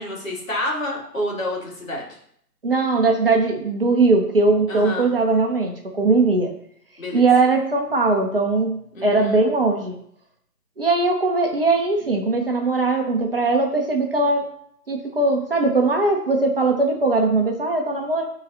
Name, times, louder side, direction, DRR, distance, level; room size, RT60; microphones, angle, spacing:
voice 1, 0.0-2.2 4.7-5.1 7.0-7.2 8.9-9.4, left 1 dB, 55° left, -3 dB, 2.5 m, -29 dB
voice 2, 2.6-6.5 7.1-9.9 10.8-14.5 14.9-18.2, right 3 dB, 35° right, 2 dB, 0.8 m, -20 dB
12.0 x 4.0 x 2.7 m, 0.67 s
figure-of-eight pair, 145°, 48 cm